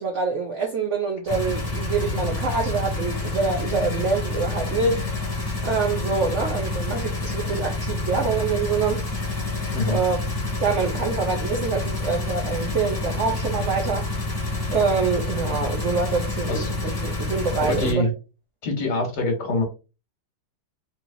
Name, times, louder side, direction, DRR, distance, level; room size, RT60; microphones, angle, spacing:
voice 1, 0.0-5.0 5.6-9.1 9.8-10.2 10.6-14.1 14.7-18.0, right 4 dB, 70° right, 0.7 m, -25 dB
sound 1, 1.3-17.9, left 2 dB, 15° left, 1.1 m, -28 dB
voice 2, 17.6-18.1 18.6-19.6, left 2 dB, 65° left, 1.7 m, -24 dB
4.1 x 3.0 x 2.6 m
omnidirectional pair, 2.0 m